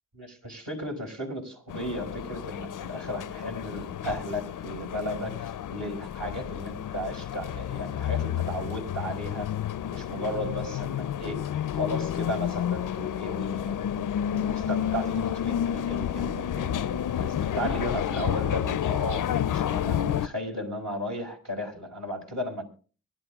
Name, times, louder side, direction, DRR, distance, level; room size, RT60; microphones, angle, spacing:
voice 1, 0.2-9.5 9.9-22.7, equal, 50° right, 0 dB, 5.8 m, -35 dB
sound 1, 1.7-20.3, left 10 dB, 55° left, 0.6 m, -30 dB
23.5 x 11.5 x 2.4 m, 0.39 s
supercardioid pair, 45°, 37 cm